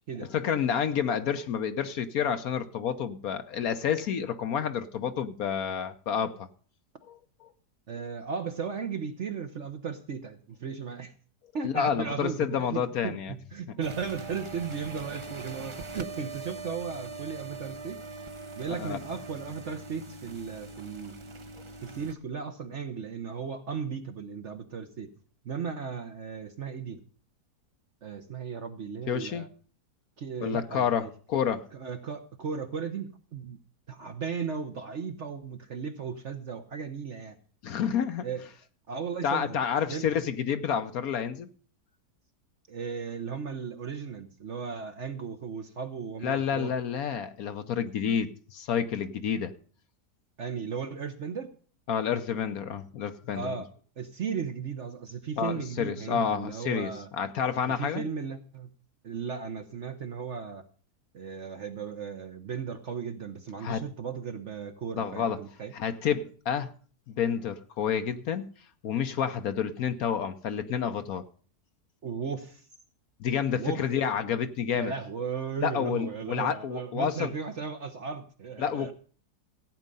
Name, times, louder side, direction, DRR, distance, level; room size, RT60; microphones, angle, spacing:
voice 1, 0.3-6.5 7.1-7.2 11.6-13.3 18.8-19.0 29.1-29.5 30.4-31.6 37.6-38.3 39.2-41.5 46.2-49.5 51.9-53.5 55.4-58.0 63.6-63.8 65.0-65.4 65.7-66.7 67.1-68.5 68.8-71.2 73.2-74.9 75.6-77.3 78.6-78.9, left 8 dB, 65° left, 9 dB, 1.2 m, -29 dB
voice 2, 7.9-11.1 11.5-18.0 18.6-21.1 21.8-25.1 25.4-27.0 28.0-29.5 30.2-31.1 31.7-33.6 33.9-37.4 38.2-38.5 38.9-39.6 39.9-40.1 42.7-46.7 50.4-51.5 53.3-53.7 54.0-57.1 57.7-58.7 59.0-60.6 61.1-65.7 72.0-72.6 73.5-73.9 74.7-78.9, right 6 dB, 50° right, 6 dB, 1.1 m, -36 dB
sound 1, 13.8-22.1, right 3 dB, 25° right, 0.6 m, -42 dB
15.0 x 8.7 x 5.4 m, 0.42 s
omnidirectional pair, 1.7 m